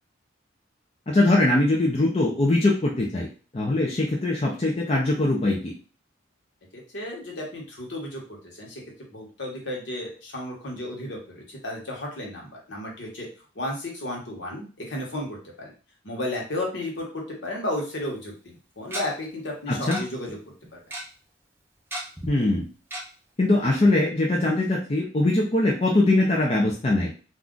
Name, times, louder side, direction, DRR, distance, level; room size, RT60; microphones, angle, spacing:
voice 1, 1.1-3.3 3.5-5.7 19.7-20.0 22.3-22.7 23.4-27.1, left 2 dB, 30° left, -2 dB, 0.4 m, -22 dB
voice 2, 6.9-8.8 9.1-13.3 13.5-15.7 16.0-20.4 20.7-20.8, left 1 dB, 65° left, -1 dB, 1.0 m, -33 dB
Tick-tock, 18.0-18.1 18.9-19.0 19.9-20.0 20.3-20.4 20.6-21.0 21.9-22.3 22.9-23.0 23.5-23.6 23.8-23.9, right 1 dB, 10° right, 0.6 m, -33 dB
2.4 x 2.2 x 3.7 m, 0.36 s
head